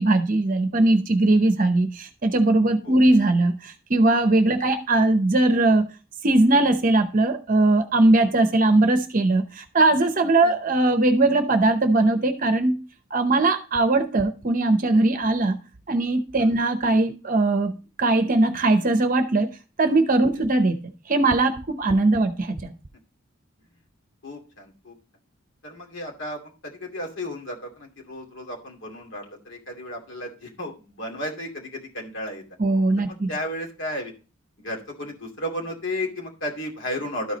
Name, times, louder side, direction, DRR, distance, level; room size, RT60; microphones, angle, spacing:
voice 1, 0.0-5.9 6.2-12.8 13.1-15.6 15.9-17.7 18.0-19.5 19.8-20.8 21.1-22.7 32.6-33.3, right 2 dB, 40° right, 0.8 m, -20 dB
voice 2, 24.2-25.0 25.6-32.4 33.0-34.1 34.6-37.4, left 1 dB, 65° left, 2.5 m, -34 dB
12.5 x 4.7 x 4.0 m
head